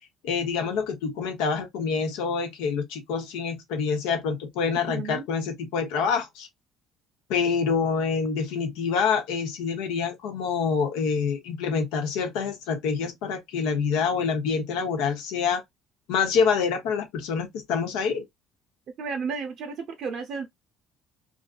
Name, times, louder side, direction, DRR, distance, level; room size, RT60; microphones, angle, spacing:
voice 1, 0.2-6.5 7.3-15.6 16.1-18.2, left 5 dB, 80° left, 0.8 m, -26 dB
voice 2, 4.9-5.2 19.0-20.5, right 5 dB, 60° right, 0.6 m, -32 dB
2.6 x 2.4 x 2.3 m
supercardioid pair, 65°, 0 cm